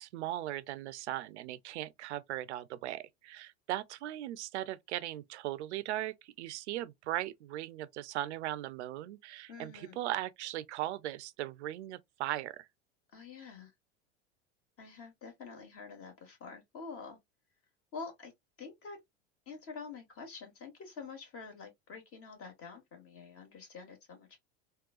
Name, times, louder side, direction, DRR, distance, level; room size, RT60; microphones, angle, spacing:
voice 1, 0.0-12.6, right 14 dB, 85° right, 0.5 m, -38 dB
voice 2, 9.5-10.0 13.1-13.7 14.8-17.2 17.9-18.3 18.6-19.0 19.4-24.4, left 4 dB, 40° left, 1.6 m, -47 dB
3.6 x 2.3 x 2.3 m
hypercardioid pair, 105°, 33 cm